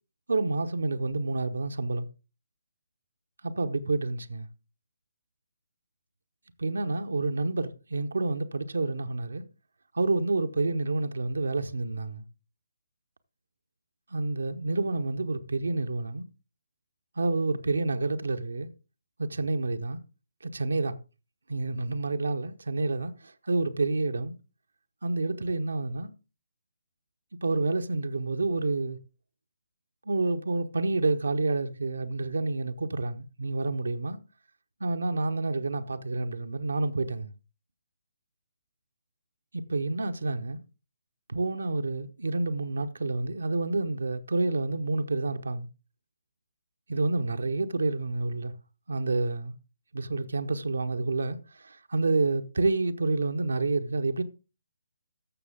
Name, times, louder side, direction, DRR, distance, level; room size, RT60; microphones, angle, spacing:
voice 1, 0.3-2.1 3.4-4.5 6.6-9.4 9.9-12.2 14.1-16.3 17.2-18.7 19.2-20.0 20.4-21.0 21.5-24.4 25.0-26.1 27.4-29.0 30.1-34.2 34.8-37.3 39.5-40.6 41.3-45.7 46.9-48.5 48.9-49.5 49.9-54.2, right 3 dB, 65° right, 1.0 m, -29 dB
14.0 x 6.6 x 3.7 m
figure-of-eight pair, 140°, 0 cm